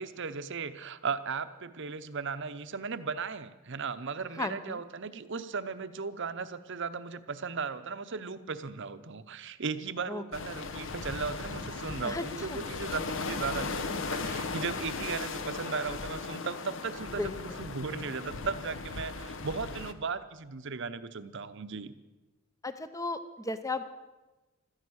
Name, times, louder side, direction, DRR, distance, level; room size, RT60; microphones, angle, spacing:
voice 1, 0.0-21.9, right 5 dB, 55° right, 12 dB, 0.8 m, -36 dB
voice 2, 4.3-4.8 10.1-10.2 12.0-12.2 12.5-12.6 17.2-17.3 22.6-23.8, left 2 dB, 15° left, 10 dB, 0.7 m, -34 dB
sound 1, 10.3-19.9, left 4 dB, 60° left, 0.9 m, -37 dB
16.5 x 13.0 x 6.4 m, 1.1 s
head